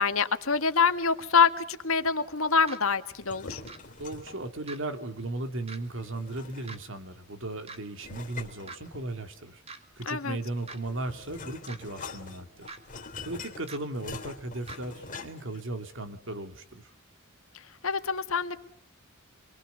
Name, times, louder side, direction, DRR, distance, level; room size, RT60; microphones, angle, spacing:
voice 1, 0.0-3.6 10.1-10.4 17.8-18.6, left 5 dB, 75° left, 9 dB, 1.8 m, -25 dB
sound 1, 2.7-2.8 3.7-3.8 4.7-4.8 5.7-5.8 6.7-6.8 7.7-7.8 8.7-8.8 9.7-9.8 10.7-10.8 11.7-11.8 12.7-12.8 13.7-13.8 14.7-14.8, right 3 dB, 30° right, 2.2 m, -42 dB
sound 2, 3.1-4.5 6.0-7.0 8.0-9.4 10.5-15.6, left 4 dB, 40° left, 3.3 m, -44 dB
voice 2, 4.0-12.7 13.2-16.9, right 2 dB, 60° right, 7 dB, 2.6 m, -36 dB
28.0 x 23.0 x 6.9 m, 0.70 s
head